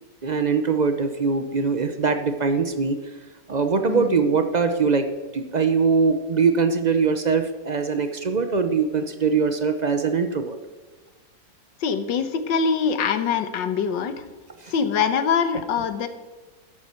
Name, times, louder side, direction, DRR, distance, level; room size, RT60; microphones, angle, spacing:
voice 1, 0.2-3.0 3.5-5.1 5.3-10.6 14.6-14.7, right 5 dB, 60° right, 8 dB, 0.4 m, -22 dB
voice 2, 11.8-14.2 14.7-16.1, left 6 dB, 80° left, 10 dB, 1.7 m, -23 dB
13.0 x 11.0 x 4.5 m, 1.3 s
omnidirectional pair, 2.0 m